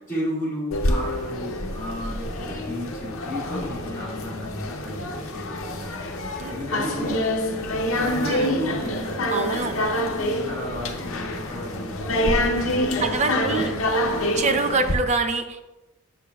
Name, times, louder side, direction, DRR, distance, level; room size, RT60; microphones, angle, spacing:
voice 1, 0.1-7.2 8.0-9.2 9.7-14.0, left 1 dB, 10° left, -7 dB, 2.0 m, -34 dB
sound 1, 0.7-14.9, left 1 dB, 75° left, 0.7 m, -26 dB
voice 2, 9.3-9.7 13.0-13.7 14.4-15.6, right 3 dB, 35° right, 7 dB, 0.4 m, -25 dB
7.0 x 6.0 x 2.3 m, 1.0 s
head